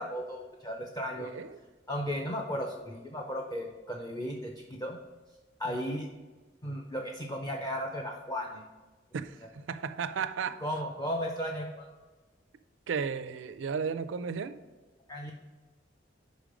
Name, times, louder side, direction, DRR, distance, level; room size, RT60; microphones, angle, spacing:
voice 1, 0.0-1.3 1.9-5.0 5.6-6.1 6.6-8.6 10.6-11.9 15.1-15.3, equal, 20° left, 0.5 m, -35 dB
voice 2, 1.2-1.6 5.6-6.0 9.1-10.6 12.9-14.6, right 6 dB, 75° right, 0.4 m, -34 dB
5.3 x 5.0 x 5.1 m
head